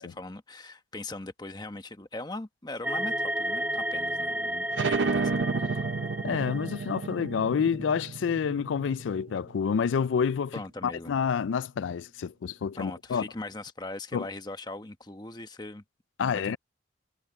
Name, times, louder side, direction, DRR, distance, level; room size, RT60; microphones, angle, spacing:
voice 1, 0.0-5.3 5.6-5.8 10.5-11.2 12.7-15.8 16.2-16.6, left 2 dB, 20° left, 1.1 m, -40 dB
sound 1, 2.8-7.1, right 1 dB, 5° right, 2.2 m, -32 dB
sound 2, 4.7-10.0, right 4 dB, 80° right, 0.6 m, -32 dB
voice 2, 6.2-10.5 10.8-13.3 14.1-14.3 16.2-16.6, left 6 dB, 85° left, 0.4 m, -28 dB
head